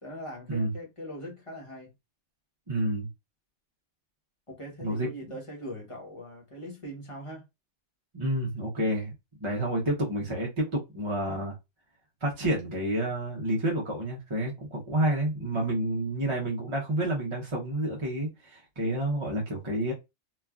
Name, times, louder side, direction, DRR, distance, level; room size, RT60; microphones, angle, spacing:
voice 1, 0.0-1.9 4.5-7.5 9.4-9.7, equal, 25° left, 1.1 m, -41 dB
voice 2, 2.7-3.1 4.8-5.1 8.1-9.1 9.4-11.6 12.2-19.9, right 1 dB, 30° right, 0.7 m, -29 dB
3.1 x 2.4 x 2.3 m
omnidirectional pair, 1.3 m